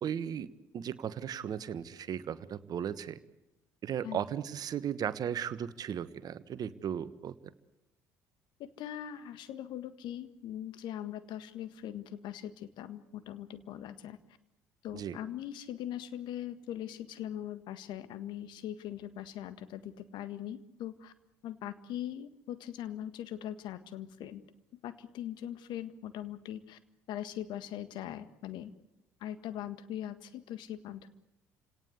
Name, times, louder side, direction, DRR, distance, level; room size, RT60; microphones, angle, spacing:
voice 1, 0.0-3.2 3.8-7.3 14.9-15.2, right 9 dB, 45° right, 14 dB, 1.3 m, -36 dB
voice 2, 8.6-14.2 14.8-21.1 21.4-24.4 24.8-26.8 27.1-28.7 29.2-31.1, left 11 dB, 60° left, 12 dB, 1.7 m, -41 dB
29.5 x 18.0 x 8.1 m, 0.92 s
figure-of-eight pair, 55°, 9 cm